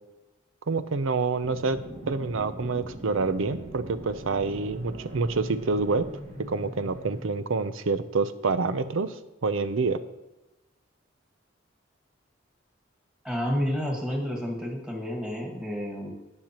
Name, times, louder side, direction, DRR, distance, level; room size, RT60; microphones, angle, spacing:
voice 1, 0.7-1.8 2.1-6.1 6.5-9.1 9.4-10.0, right 4 dB, 75° right, 12 dB, 0.6 m, -27 dB
sound 1, 1.4-7.2, right 1 dB, 35° right, 1.8 m, -41 dB
voice 2, 13.2-16.1, equal, 5° right, 0 dB, 1.8 m, -30 dB
17.5 x 6.5 x 3.0 m, 1.0 s
head